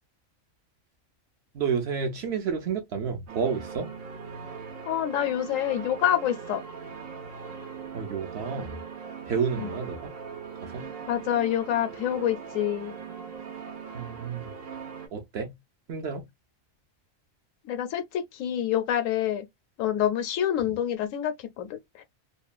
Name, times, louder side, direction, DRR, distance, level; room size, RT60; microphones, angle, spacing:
voice 1, 1.5-3.9 7.9-8.8 9.3-10.1 10.6-10.9 13.9-14.5 15.1-15.5 15.9-16.3, right 6 dB, 60° right, 0.7 m, -30 dB
sound 1, 3.3-15.1, right 6 dB, 90° right, 1.2 m, -40 dB
voice 2, 4.9-6.6 9.6-9.7 11.1-12.9 17.6-19.4 19.8-22.0, left 10 dB, 75° left, 0.9 m, -27 dB
2.9 x 2.1 x 2.3 m
omnidirectional pair, 1.4 m